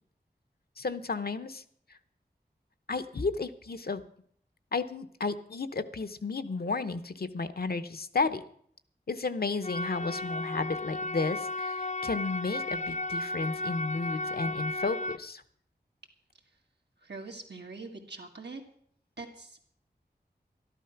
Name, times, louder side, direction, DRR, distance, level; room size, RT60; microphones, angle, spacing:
voice 1, 0.8-1.6 2.9-4.0 4.7-8.4 9.1-15.4, left 4 dB, 65° left, 10 dB, 0.8 m, -33 dB
sound 1, 9.6-15.2, left 2 dB, 45° left, 0.4 m, -34 dB
voice 2, 17.0-18.6 19.2-19.6, right 3 dB, 90° right, 2 dB, 2.0 m, -43 dB
12.5 x 12.0 x 5.8 m, 0.63 s
wide cardioid pair, 70°, 17 cm